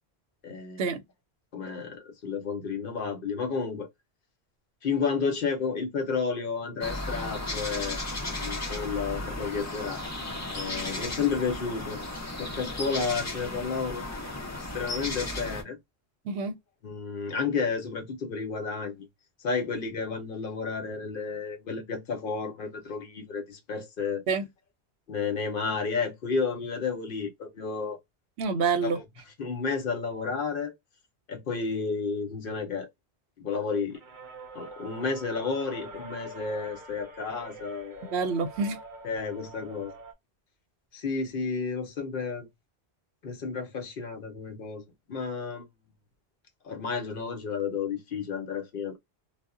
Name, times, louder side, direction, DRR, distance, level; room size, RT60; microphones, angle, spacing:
voice 1, 0.4-0.8 1.5-3.9 4.8-8.0 8.4-10.0 10.5-12.0 12.4-15.8 16.8-19.1 19.4-24.2 25.1-28.0 28.8-29.0 29.4-30.7 31.3-32.9 33.4-34.0 34.5-38.1 39.0-39.9 40.9-42.5 43.2-44.8 45.1-45.6 46.6-49.0, left 5 dB, 60° left, 0.8 m, -31 dB
sound 1, 6.8-15.6, left 2 dB, 20° left, 0.5 m, -35 dB
voice 2, 28.4-29.0 38.1-38.8, right 5 dB, 90° right, 0.8 m, -27 dB
sound 2, 33.9-40.1, right 2 dB, 55° right, 0.7 m, -45 dB
2.1 x 2.0 x 3.5 m
omnidirectional pair, 1.1 m